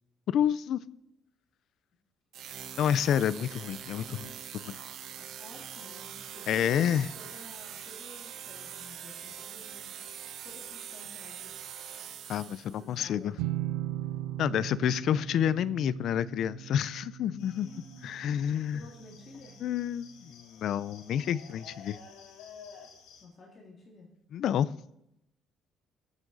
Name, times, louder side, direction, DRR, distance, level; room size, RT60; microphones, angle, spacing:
voice 1, 0.3-0.8 2.8-4.3 4.6-4.8 6.5-7.1 12.3-13.3 14.4-17.7 18.0-18.8 19.6-22.0 24.3-24.7, left 9 dB, 50° left, 17 dB, 0.4 m, -29 dB
sound 1, 2.3-12.9, right 9 dB, 50° right, 0.8 m, -43 dB
voice 2, 5.2-10.1 10.4-11.5 12.5-13.6 14.5-14.9 17.4-18.2 18.7-19.6 23.2-24.1, left 2 dB, 30° left, 0 dB, 2.2 m, -53 dB
sound 2, 13.4-19.0, right 14 dB, 85° right, 0.4 m, -38 dB
sound 3, 17.4-23.2, left 6 dB, 90° left, 2.6 m, -52 dB
21.5 x 7.4 x 3.9 m, 0.83 s
cardioid pair, 180°, 0 cm